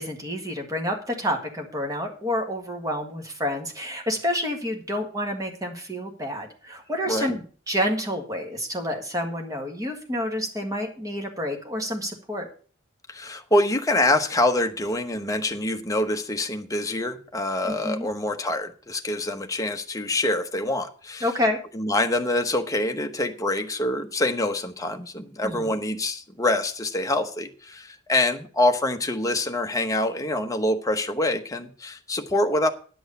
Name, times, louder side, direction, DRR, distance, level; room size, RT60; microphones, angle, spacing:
voice 1, 0.0-12.5 17.6-18.1 21.2-21.6 25.4-25.7, equal, 20° right, 1.8 m, -29 dB
voice 2, 13.1-21.3 21.7-32.7, left 1 dB, 15° left, 0.9 m, -25 dB
10.0 x 6.3 x 6.8 m
head